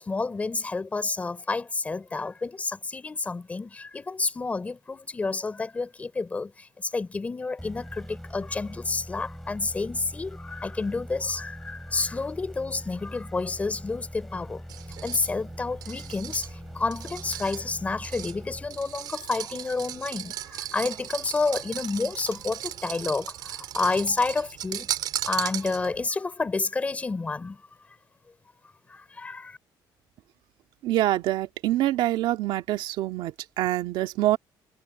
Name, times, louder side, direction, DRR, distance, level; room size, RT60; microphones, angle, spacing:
voice 1, 0.0-14.6 15.0-16.5 16.7-24.9 25.2-27.6 28.9-29.6, left 3 dB, 15° left, 3.4 m, -30 dB
sound 1, 7.6-19.3, equal, ahead, 4.2 m, -42 dB
sound 2, 14.7-26.1, right 12 dB, 60° right, 3.9 m, -37 dB
voice 2, 30.8-34.4, right 14 dB, 80° right, 2.0 m, -25 dB
cardioid pair, 160°, 8 cm